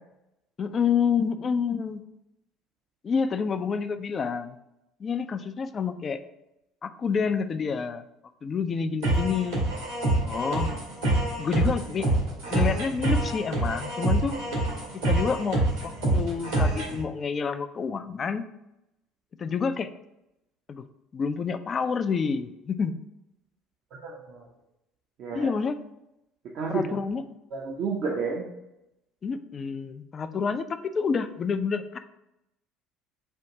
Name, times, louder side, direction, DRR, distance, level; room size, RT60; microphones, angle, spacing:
voice 1, 0.6-2.0 3.0-4.6 5.0-6.2 6.8-8.0 8.4-9.6 10.2-10.7 11.4-12.1 12.5-14.3 15.1-18.5 19.4-19.9 20.7-20.8 21.1-23.0 25.3-25.8 26.7-27.2 29.2-32.0, left 6 dB, 35° left, 10 dB, 0.4 m, -28 dB
sound 1, 9.0-17.0, right 2 dB, 75° right, 1.6 m, -26 dB
voice 2, 23.9-24.4 25.2-25.5 26.5-27.0 27.5-28.4, right 4 dB, 55° right, -2 dB, 0.7 m, -31 dB
4.4 x 2.5 x 4.8 m, 0.87 s
figure-of-eight pair, 60°, 0 cm